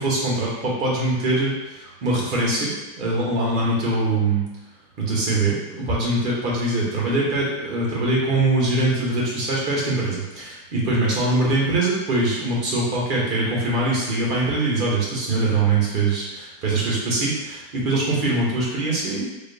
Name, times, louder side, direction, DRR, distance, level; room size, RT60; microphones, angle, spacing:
voice 1, 0.0-4.5 5.0-19.2, right 2 dB, 40° right, -5 dB, 1.1 m, -23 dB
3.3 x 2.1 x 2.7 m, 1.0 s
figure-of-eight pair, 90°, 0 cm